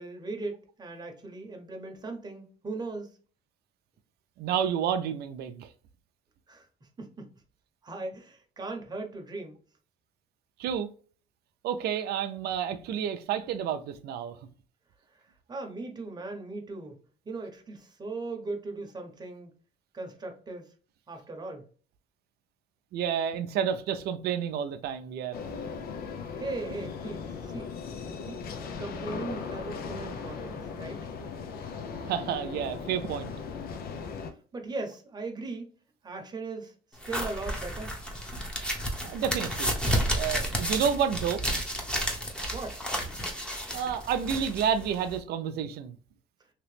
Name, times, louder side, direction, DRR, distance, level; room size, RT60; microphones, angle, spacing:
voice 1, 0.0-3.1 6.5-6.7 7.0-7.3 7.8-9.6 15.1-15.2 15.5-17.0 17.2-19.5 19.9-20.7 21.1-21.6 26.4-27.7 28.2-28.4 28.8-31.0 34.5-35.7 36.0-36.7 37.1-37.9 42.5-42.8, right 3 dB, 25° right, 0.9 m, -38 dB
voice 2, 4.4-5.7 10.6-10.9 11.6-14.4 22.9-25.4 31.9-33.3 39.0-39.7 40.2-41.4 43.7-46.0, right 8 dB, 70° right, 0.5 m, -30 dB
sound 1, 25.3-34.3, left 5 dB, 65° left, 0.6 m, -38 dB
sound 2, 37.0-45.2, equal, 5° left, 0.9 m, -32 dB
2.9 x 2.9 x 3.3 m
cardioid pair, 110°, 17 cm